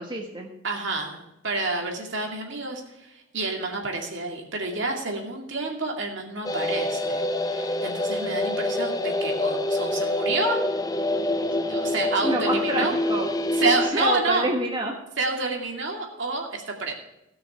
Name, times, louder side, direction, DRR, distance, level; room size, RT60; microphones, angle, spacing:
voice 1, 0.0-0.5 12.2-13.6 13.9-15.0, right 1 dB, 20° right, 0 dB, 1.2 m, -28 dB
voice 2, 0.6-10.6 11.7-12.9 13.5-14.5 15.2-16.9, right 3 dB, 65° right, 1 dB, 2.4 m, -29 dB
sound 1, 6.4-13.9, left 1 dB, 20° left, 0.5 m, -26 dB
16.5 x 6.3 x 5.7 m, 0.89 s
head